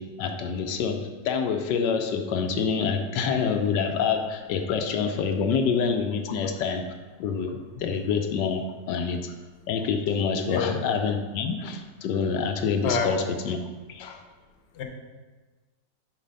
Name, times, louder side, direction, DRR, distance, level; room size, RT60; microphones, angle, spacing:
voice 1, 0.0-6.9 7.2-9.3 9.7-13.6 13.9-14.2, left 6 dB, 80° left, 5 dB, 1.2 m, -27 dB
voice 2, 10.5-10.8 12.8-13.2 14.7-14.8, left 6 dB, 45° left, 3 dB, 1.0 m, -27 dB
7.3 x 4.7 x 5.3 m, 1.3 s
omnidirectional pair, 1.9 m